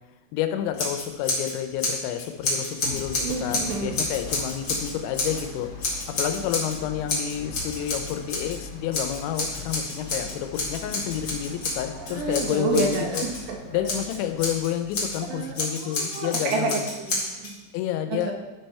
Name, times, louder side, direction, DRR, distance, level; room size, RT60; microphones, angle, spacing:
voice 1, 0.3-13.2 13.7-16.9 17.7-18.3, left 11 dB, 90° left, 7 dB, 3.0 m, -29 dB
Scissors, 0.7-1.5 1.8-5.4 5.8-6.8 7.1-8.6 8.9-13.4 13.8-15.2 15.5-17.5, left 2 dB, 75° left, 1.0 m, -30 dB
sound 1, 2.8-15.5, left 3 dB, 50° left, 2.1 m, -41 dB
voice 2, 3.2-3.9 12.1-13.9 15.3-17.6 18.3-18.4, right 4 dB, 75° right, 1 dB, 3.1 m, -29 dB
11.5 x 5.6 x 4.3 m, 1.1 s
omnidirectional pair, 5.2 m